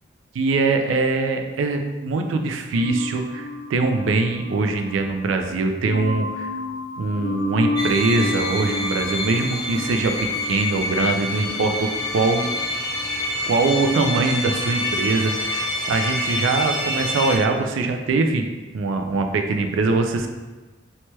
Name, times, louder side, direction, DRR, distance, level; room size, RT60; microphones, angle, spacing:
voice 1, 0.3-6.5 7.0-12.5 13.5-18.5 18.7-20.3, right 3 dB, 85° right, 5 dB, 0.3 m, -22 dB
sound 1, 2.7-15.0, left 2 dB, 90° left, 0.6 m, -33 dB
sound 2, 7.8-17.4, left 1 dB, 20° left, 0.4 m, -27 dB
2.9 x 2.2 x 3.0 m, 1.2 s
head